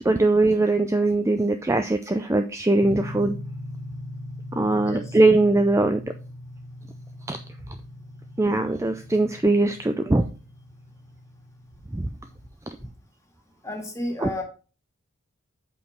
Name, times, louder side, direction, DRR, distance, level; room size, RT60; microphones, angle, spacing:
voice 1, 0.0-3.4 4.5-6.0 7.3-7.4 8.4-10.3 11.9-12.1 14.2-14.3, right 2 dB, 15° right, 8 dB, 0.4 m, -21 dB
sound 1, 2.8-12.5, left 1 dB, 45° right, 2.9 m, -40 dB
voice 2, 4.8-5.2 12.8-12.9 13.6-14.4, left 1 dB, 15° left, 1 dB, 1.9 m, -32 dB
8.2 x 5.0 x 5.1 m, 0.34 s
head